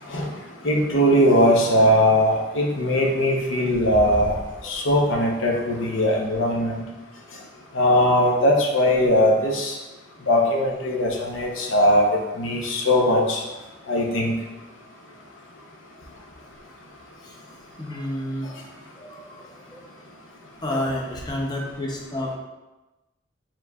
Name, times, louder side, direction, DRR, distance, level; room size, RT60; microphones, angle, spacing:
voice 1, 0.6-6.8 7.7-9.7 10.3-13.4 13.9-14.3 20.7-20.8, equal, 80° left, 0 dB, 0.7 m, -20 dB
voice 2, 17.8-18.6 19.0-19.8 20.6-22.4, left 1 dB, 20° left, -1 dB, 0.6 m, -30 dB
4.5 x 3.7 x 2.3 m, 1.1 s
head